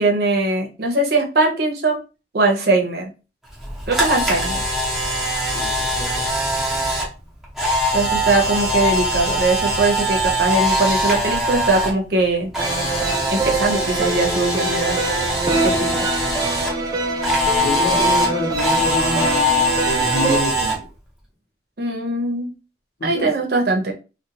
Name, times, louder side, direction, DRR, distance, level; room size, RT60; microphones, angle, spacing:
voice 1, 0.0-2.0 2.3-3.1 3.9-4.6 7.9-12.5 13.3-15.0 15.6-16.1 21.8-22.5 23.0-23.9, right 2 dB, 60° right, 1 dB, 0.7 m, -20 dB
Camera, 3.6-11.9 12.2-16.7 17.2-20.7, equal, ahead, 0.8 m, -22 dB
voice 2, 5.5-6.4 15.6-15.8 17.6-19.3 19.8-20.9 23.0-23.3, left 1 dB, 60° left, 1 dB, 0.9 m, -27 dB
sound 1, 12.6-20.4, right 3 dB, 20° right, 0.4 m, -24 dB
2.4 x 2.3 x 2.9 m, 0.31 s
head